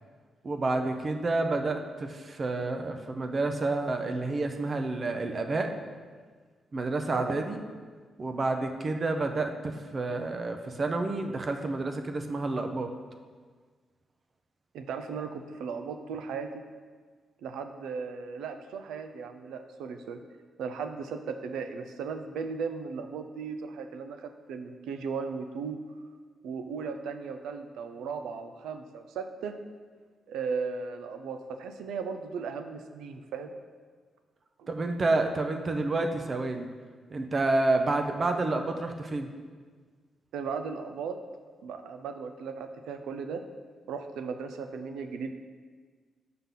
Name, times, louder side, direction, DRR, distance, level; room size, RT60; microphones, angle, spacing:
voice 1, 0.4-5.7 6.7-7.6 8.2-12.9 34.7-36.7 37.1-39.3, right 2 dB, 45° right, 5 dB, 0.6 m, -29 dB
voice 2, 14.7-16.6 17.4-20.2 20.6-25.8 26.4-29.5 30.3-33.5 40.3-41.2 41.6-43.4 43.9-45.3, right 5 dB, 85° right, 7 dB, 0.4 m, -36 dB
5.6 x 5.6 x 3.7 m, 1.5 s
supercardioid pair, 60°, 0 cm